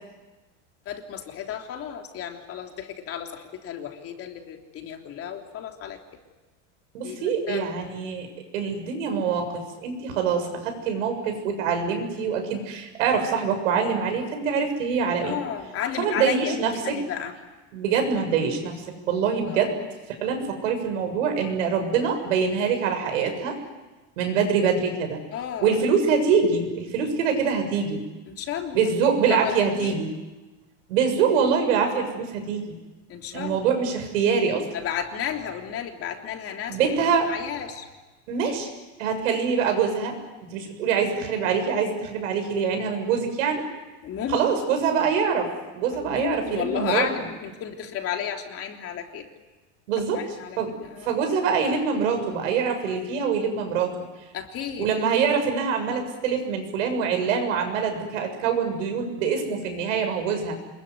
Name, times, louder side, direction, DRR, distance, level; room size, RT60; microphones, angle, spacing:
voice 1, 0.8-6.0 7.0-7.7 15.2-17.3 19.5-19.7 25.3-25.8 28.3-28.9 29.3-30.0 33.1-33.6 34.7-36.9 37.2-37.8 44.0-44.4 45.9-49.3 50.1-51.1 54.3-54.9, left 8 dB, 35° left, 3 dB, 3.4 m, -33 dB
voice 2, 6.9-8.3 8.5-15.4 16.0-17.0 17.7-18.8 19.1-19.7 20.2-23.6 24.2-25.2 25.6-28.0 28.7-30.1 30.9-32.7 33.3-34.7 36.7-37.3 38.3-38.7 39.0-40.2 40.4-43.6 44.3-47.1 49.9-50.2 50.6-50.7 51.0-53.9 54.8-60.5, right 6 dB, 90° right, 5 dB, 7.1 m, -24 dB
27.0 x 22.0 x 9.6 m, 1.2 s
supercardioid pair, 140°, 37 cm